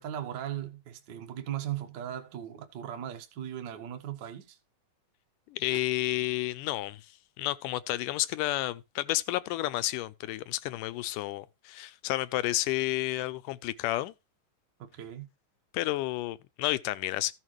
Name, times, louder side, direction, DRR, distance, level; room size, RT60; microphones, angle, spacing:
voice 1, 0.0-4.6 14.8-15.3, right 11 dB, 90° right, 0.9 m, -38 dB
voice 2, 5.5-7.0 7.4-14.1 15.7-17.3, left 16 dB, 80° left, 2.1 m, -31 dB
14.5 x 6.5 x 3.1 m
omnidirectional pair, 3.8 m